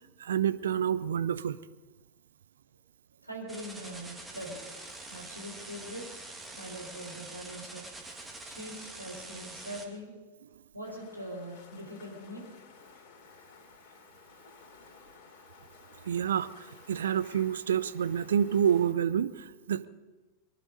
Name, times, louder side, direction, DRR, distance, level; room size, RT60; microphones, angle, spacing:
voice 1, 0.2-1.6 16.1-19.9, right 9 dB, 65° right, 14 dB, 0.7 m, -28 dB
voice 2, 3.2-4.6 5.1-6.0 6.5-7.8 8.4-10.1 10.7-12.5, equal, 85° right, 0 dB, 4.0 m, -42 dB
sound 1, 3.5-9.9, right 2 dB, 10° right, 2.3 m, -45 dB
sound 2, 10.8-18.9, left 5 dB, 45° left, 3.0 m, -55 dB
23.5 x 11.5 x 5.3 m, 1.2 s
figure-of-eight pair, 90°, 0 cm